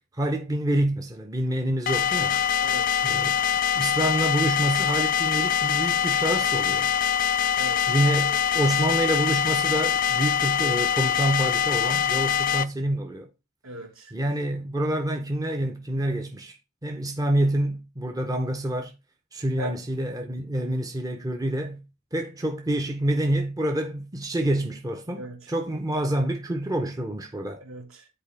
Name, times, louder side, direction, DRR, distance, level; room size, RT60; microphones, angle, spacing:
voice 1, 0.1-2.4 3.0-3.3 3.8-6.9 7.9-13.3 14.1-16.6 16.8-18.9 19.3-21.8 22.1-27.6, right 1 dB, 15° right, 0.6 m, -27 dB
sound 1, 1.9-12.6, left 8 dB, 40° left, 0.4 m, -24 dB
voice 2, 2.6-3.1 7.5-7.9 13.6-14.1 19.6-19.7 25.2-25.5 27.6-28.1, equal, 70° right, 1.9 m, -38 dB
9.8 x 4.4 x 3.3 m
head